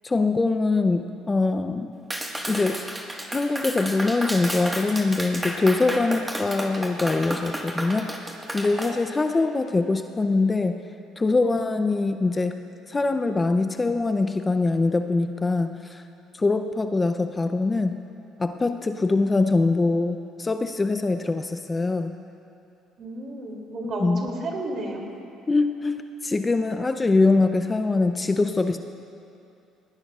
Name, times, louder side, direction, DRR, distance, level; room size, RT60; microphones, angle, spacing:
voice 1, 0.0-1.9 2.5-2.8 3.3-8.3 8.5-10.8 11.2-12.5 12.9-16.0 16.3-18.0 18.4-22.1 24.0-24.3 25.5-28.8, left 3 dB, 20° left, 8 dB, 0.5 m, -23 dB
Clapping, 2.1-8.9, right 1 dB, 10° right, 1.5 m, -32 dB
voice 2, 23.0-25.0, right 2 dB, 50° right, 0 dB, 2.8 m, -32 dB
19.0 x 18.5 x 2.4 m, 2.7 s
cardioid pair, 95°, 0 cm